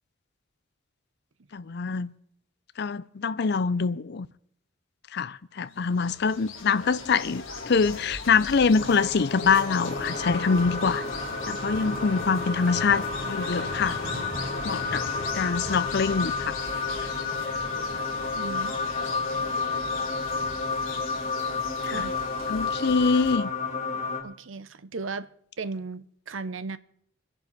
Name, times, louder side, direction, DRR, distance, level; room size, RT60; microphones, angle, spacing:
voice 1, 1.5-2.1 2.8-4.3 5.1-11.1 11.5-14.0 14.6-15.0 15.3-16.6 21.8-22.1 22.5-23.5, left 5 dB, 55° left, 0.5 m, -25 dB
sound 1, 5.7-23.4, left 3 dB, 75° left, 2.7 m, -39 dB
sound 2, 8.7-24.2, left 4 dB, 35° left, 2.5 m, -31 dB
Vehicle horn car horn honking / Traffic noise roadway noise, 9.6-15.3, left 1 dB, 20° left, 6.6 m, -39 dB
voice 2, 18.3-18.8 21.9-22.2 24.2-25.3 25.6-26.8, right 4 dB, 70° right, 0.7 m, -36 dB
27.0 x 11.0 x 4.1 m
head